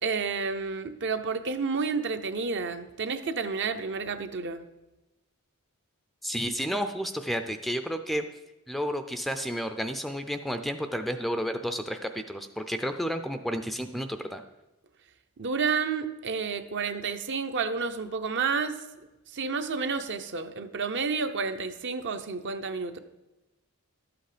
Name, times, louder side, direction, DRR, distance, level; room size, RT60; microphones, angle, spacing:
voice 1, 0.0-4.6 15.4-19.1 19.3-23.0, right 5 dB, 55° right, 8 dB, 0.7 m, -30 dB
voice 2, 6.2-8.2 8.7-14.4, equal, ahead, 8 dB, 0.4 m, -31 dB
12.0 x 8.0 x 5.0 m, 1.0 s
head